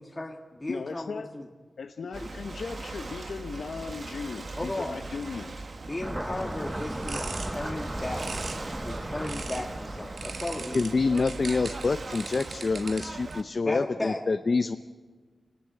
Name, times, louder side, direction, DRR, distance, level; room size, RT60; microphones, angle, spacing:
voice 1, 0.0-1.5 4.5-5.0 5.9-8.3 8.8-10.9 13.7-14.2, left 1 dB, 20° left, 0 dB, 1.7 m, -35 dB
voice 2, 0.7-1.3 1.8-5.7, left 5 dB, 80° left, 5 dB, 0.9 m, -37 dB
Ocean / Boat Water vehicle, 2.1-13.4, right 3 dB, 50° right, 1.2 m, -40 dB
sound 1, 6.0-11.0, right 1 dB, 10° right, 0.9 m, -36 dB
sound 2, 6.7-9.7 10.2-13.3, right 4 dB, 80° right, 2.0 m, -41 dB
voice 3, 10.7-14.8, left 4 dB, 50° left, 9 dB, 0.7 m, -26 dB
26.5 x 18.5 x 9.3 m, 1.5 s
wide cardioid pair, 110°, 0 cm